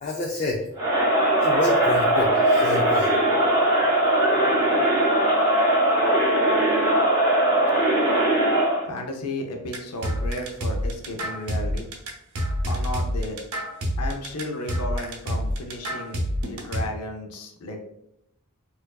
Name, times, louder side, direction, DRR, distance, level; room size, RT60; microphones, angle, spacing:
voice 1, 0.0-0.7 1.4-3.2, left 1 dB, 35° left, -1 dB, 0.4 m, -28 dB
Crowd, 0.8-8.9, right 1 dB, 20° right, 0.8 m, -20 dB
voice 2, 8.9-11.9 12.7-13.4 14.0-17.8, left 1 dB, 85° left, 3 dB, 0.6 m, -33 dB
sound 1, 9.7-16.8, equal, 80° right, 0.7 m, -27 dB
4.4 x 2.5 x 2.3 m, 0.79 s
head